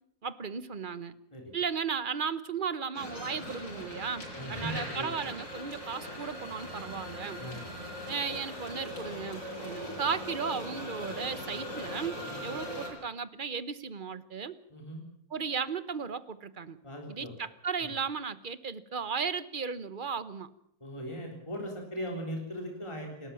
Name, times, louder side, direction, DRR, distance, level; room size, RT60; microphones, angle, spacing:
voice 1, 0.2-1.2 1.5-7.4 8.1-14.5 15.3-16.8 17.1-20.5, right 6 dB, 35° right, 15 dB, 1.1 m, -35 dB
sound 1, 2.9-12.9, equal, 55° left, 7.3 m, -40 dB
voice 2, 4.3-5.1 7.4-7.6 12.2-12.5 14.7-15.0 16.8-17.3 17.8-17.9 20.8-23.3, equal, 20° left, 1 dB, 3.9 m, -39 dB
28.5 x 13.5 x 7.2 m, 0.72 s
omnidirectional pair, 1.6 m